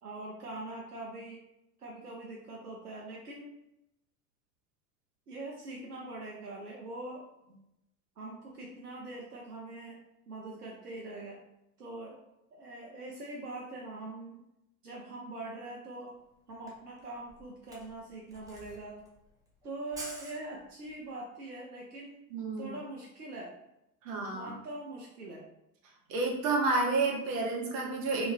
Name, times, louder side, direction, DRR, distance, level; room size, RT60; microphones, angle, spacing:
voice 1, 0.0-1.4 1.8-3.5 5.3-7.3 8.2-10.0 10.3-11.4 11.8-12.2 12.5-14.4 14.8-16.2 16.5-19.0 19.6-22.2 22.6-23.5 24.3-25.5, right 2 dB, 90° right, -3 dB, 0.5 m, -43 dB
Camera, 16.2-16.3 16.5-21.0, right 1 dB, 10° right, 0.5 m, -49 dB
voice 2, 22.3-22.7 24.0-24.5 26.1-28.3, right 3 dB, 60° right, 0 dB, 0.8 m, -30 dB
2.3 x 2.2 x 3.1 m, 0.85 s
figure-of-eight pair, 70°, 45 cm